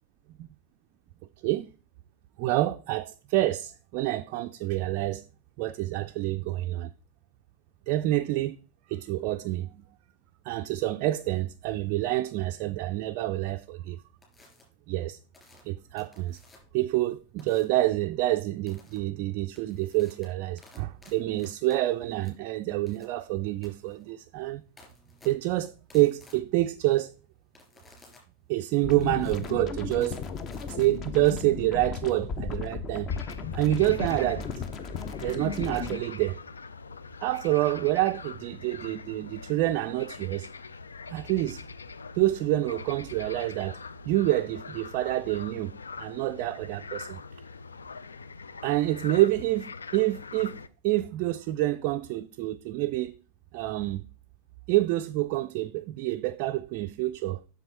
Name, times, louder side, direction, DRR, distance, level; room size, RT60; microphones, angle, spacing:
voice 1, 2.4-5.2 5.6-6.9 7.9-8.6 8.9-9.8 10.5-14.0 14.9-15.2 15.6-16.4 16.7-24.6 25.2-27.1 28.5-30.2 30.7-33.1 33.5-34.5 35.2-36.4 37.2-40.5 41.1-41.6 42.1-43.8 44.1-45.7 46.0-47.2 48.6-49.7 49.9-50.5 50.8-53.2 53.5-54.0 54.7-57.4, right 16 dB, 45° right, 0.3 m, -27 dB
sound 1, 14.2-14.6 15.3-16.8 17.4-17.8 18.7-19.0 19.4-31.3, left 3 dB, 15° left, 3.3 m, -57 dB
sound 2, 28.8-36.0, left 6 dB, 30° left, 0.8 m, -35 dB
sound 3, 33.1-50.7, left 4 dB, 75° left, 0.3 m, -43 dB
7.6 x 6.4 x 4.1 m
figure-of-eight pair, 90°, 0 cm